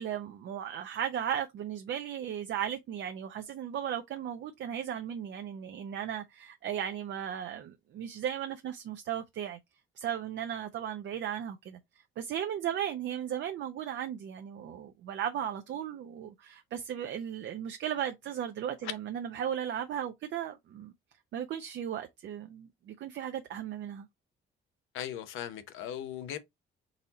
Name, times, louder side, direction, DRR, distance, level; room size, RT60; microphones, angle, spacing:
voice 1, 0.0-9.6 10.0-11.8 12.2-20.9 21.3-24.1, right 9 dB, 65° right, 0.6 m, -36 dB
voice 2, 24.9-26.4, left 10 dB, 90° left, 0.8 m, -38 dB
4.0 x 2.8 x 4.1 m
cardioid pair, 90°, 20 cm